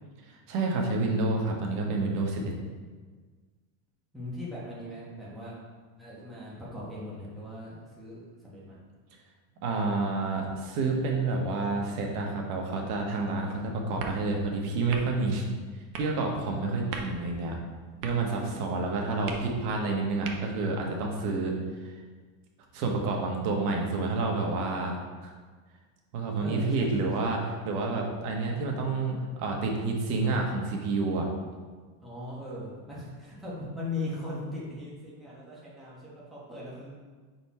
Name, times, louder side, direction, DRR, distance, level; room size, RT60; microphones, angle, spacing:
voice 1, 0.5-2.6 9.6-15.4 16.0-17.6 18.0-21.5 21.8-21.9 22.7-25.0 26.1-31.3, right 3 dB, 75° right, 1 dB, 1.3 m, -29 dB
voice 2, 4.1-5.6 6.0-8.8 26.4-27.3 32.0-36.9, left 2 dB, ahead, -8 dB, 1.3 m, -39 dB
sound 1, 13.8-20.8, right 4 dB, 45° right, 0.7 m, -44 dB
5.4 x 4.4 x 4.2 m, 1.5 s
cardioid pair, 160°, 46 cm